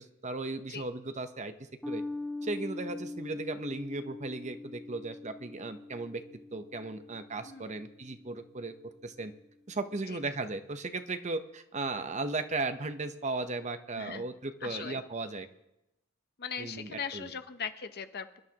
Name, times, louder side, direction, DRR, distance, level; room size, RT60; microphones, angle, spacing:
voice 1, 0.0-1.5 1.9-2.0 2.4-6.2 6.5-9.3 9.7-15.5 16.6-17.3, right 3 dB, 35° right, 9 dB, 0.8 m, -36 dB
sound 1, 1.8-8.6, left 2 dB, ahead, 1.1 m, -42 dB
voice 2, 14.6-15.0 16.4-18.4, left 6 dB, 50° left, 9 dB, 0.8 m, -39 dB
24.5 x 11.5 x 2.9 m, 0.87 s
head